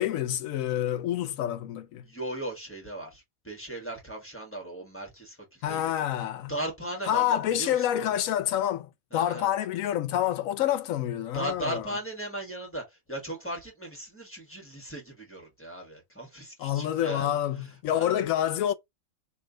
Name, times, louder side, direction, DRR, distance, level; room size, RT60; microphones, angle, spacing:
voice 1, 0.0-2.0 5.6-6.5 7.1-11.8 16.6-18.7, left 11 dB, 80° left, 1.0 m, -28 dB
voice 2, 2.0-5.9 6.5-8.2 9.1-9.5 11.3-18.2, right 1 dB, 10° left, 1.4 m, -37 dB
3.2 x 2.8 x 3.8 m
omnidirectional pair, 1.4 m